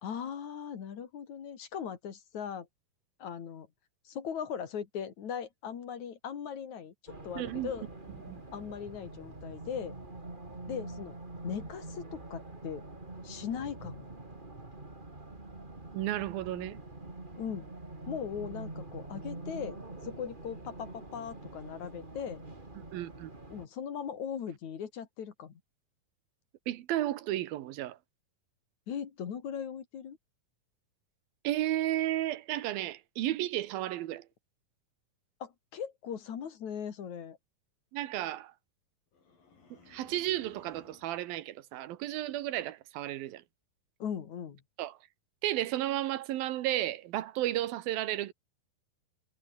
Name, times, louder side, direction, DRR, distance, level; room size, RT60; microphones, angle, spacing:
voice 1, 0.0-2.7 3.2-3.7 4.1-7.9 8.5-10.0 10.7-11.1 11.4-12.9 13.2-14.1 17.4-17.7 18.1-22.4 23.5-25.5 28.9-30.2 35.4-37.4 44.0-44.6, left 8 dB, 55° left, 3.5 m, -39 dB
Race car auto racing, 7.1-23.7, right 2 dB, 15° right, 2.9 m, -45 dB
voice 2, 7.4-7.7 8.3-8.4 15.9-16.8 22.8-23.3 26.7-28.0 31.4-34.3 37.9-38.5 39.9-43.4 44.8-45.0 45.4-48.3, right 14 dB, 85° right, 3.0 m, -33 dB
sound 1, 39.1-41.2, left 4 dB, 70° left, 7.8 m, -60 dB
omnidirectional pair, 4.1 m